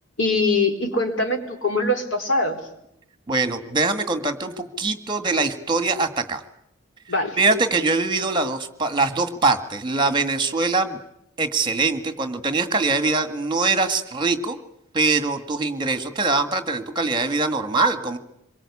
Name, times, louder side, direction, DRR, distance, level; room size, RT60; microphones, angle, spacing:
voice 1, 0.2-2.6 7.1-7.4, left 2 dB, 85° left, 4 dB, 4.4 m, -22 dB
voice 2, 3.3-6.4 7.4-11.0 11.4-14.6 14.9-18.2, right 3 dB, 25° right, 9 dB, 1.8 m, -23 dB
26.0 x 23.0 x 8.6 m, 0.78 s
head